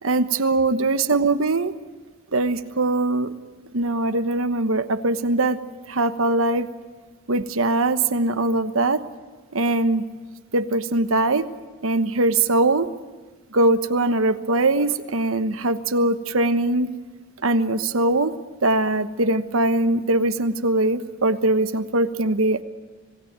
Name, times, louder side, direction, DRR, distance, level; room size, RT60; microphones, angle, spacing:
voice 1, 0.0-1.7 2.3-3.3 3.7-5.6 5.9-6.7 7.3-9.0 9.5-10.1 10.5-11.5 11.8-12.9 13.5-16.9 17.4-18.3 18.6-22.6, right 2 dB, 85° right, 10 dB, 1.2 m, -21 dB
26.5 x 19.0 x 8.9 m, 1.3 s
head